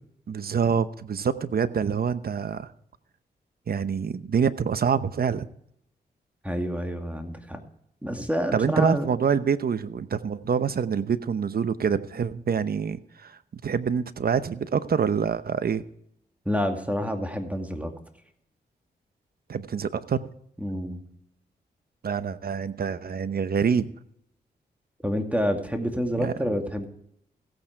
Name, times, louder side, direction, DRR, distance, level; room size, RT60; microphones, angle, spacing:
voice 1, 0.3-2.7 3.7-5.5 8.5-15.8 19.5-20.2 22.0-23.9 26.2-26.3, right 6 dB, 60° right, 13 dB, 0.9 m, -26 dB
voice 2, 6.4-7.6 8.0-9.1 16.5-17.9 20.6-21.0 25.0-26.9, equal, 10° right, 4 dB, 2.3 m, -28 dB
16.0 x 8.9 x 4.6 m, 0.71 s
cardioid pair, 60°, 18 cm